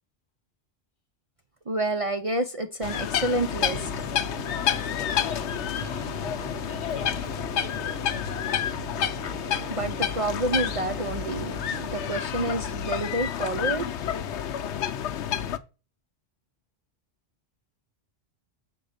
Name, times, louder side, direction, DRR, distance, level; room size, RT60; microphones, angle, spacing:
voice 1, 1.7-4.1 9.7-13.9, right 2 dB, 35° right, 0.6 m, -29 dB
sound 1, 2.8-15.6, left 9 dB, 80° left, 1.0 m, -29 dB
sound 2, 3.5-12.3, right 3 dB, 75° right, 1.8 m, -41 dB
voice 2, 4.7-8.1, left 6 dB, 50° left, 1.1 m, -46 dB
7.6 x 3.7 x 6.6 m
omnidirectional pair, 1.2 m